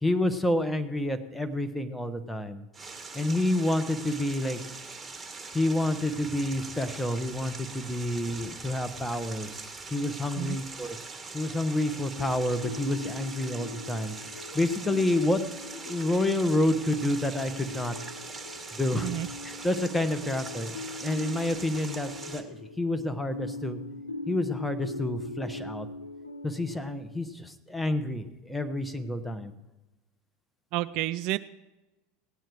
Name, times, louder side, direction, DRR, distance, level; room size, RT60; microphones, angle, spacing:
voice 1, 0.0-2.6 3.1-4.6 5.5-11.0 11.3-15.4 15.7-17.9 18.8-19.1 19.4-23.8 24.3-25.9 26.4-29.5, left 1 dB, 5° left, 9 dB, 1.3 m, -29 dB
sound 1, 2.7-22.4, right 4 dB, 15° right, 1.9 m, -42 dB
sound 2, 12.2-27.1, left 2 dB, 90° left, 0.5 m, -41 dB
voice 2, 30.7-31.4, right 15 dB, 55° right, 14 dB, 0.3 m, -30 dB
18.0 x 9.2 x 4.8 m, 1.0 s
figure-of-eight pair, 75°, 0 cm